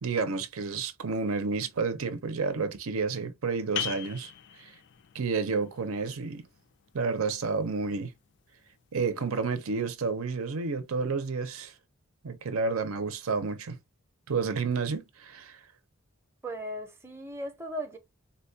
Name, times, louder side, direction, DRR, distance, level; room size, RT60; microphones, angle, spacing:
voice 1, 0.0-4.3 4.6-4.7 5.1-6.5 6.9-8.1 8.9-11.7 12.2-13.8 14.3-15.6, right 4 dB, 85° right, 0.6 m, -30 dB
sound 1, 3.8-9.1, left 11 dB, 55° left, 0.3 m, -42 dB
voice 2, 16.4-18.0, equal, 10° right, 0.6 m, -37 dB
4.1 x 2.3 x 2.6 m
head